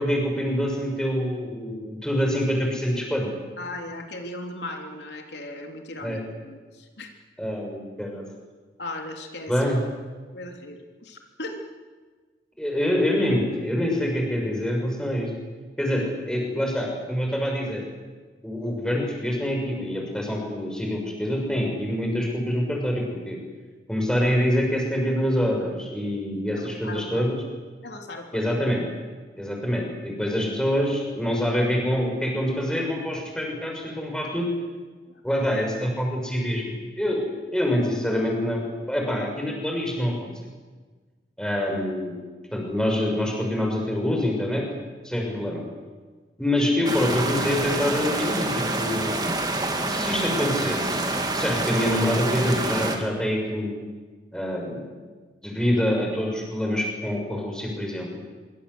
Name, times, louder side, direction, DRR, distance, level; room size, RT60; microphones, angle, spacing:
voice 1, 0.0-3.3 6.0-6.2 7.4-8.2 9.5-9.8 12.6-15.3 15.8-17.8 18.4-23.4 23.9-27.4 28.3-28.8 29.4-34.5 35.2-37.2 37.5-40.3 41.4-42.1 42.5-45.6 46.4-49.1 49.9-51.0 51.3-53.8 54.3-54.8 55.4-58.1, equal, 5° left, 0 dB, 6.2 m, -26 dB
voice 2, 3.6-7.1 8.8-9.5 10.3-11.6 26.5-27.3 27.8-28.6 35.1-35.2, left 2 dB, 80° left, 3 dB, 3.3 m, -37 dB
sound 1, 46.9-53.0, right 2 dB, 25° right, 2.8 m, -27 dB
25.0 x 24.0 x 8.1 m, 1.4 s
head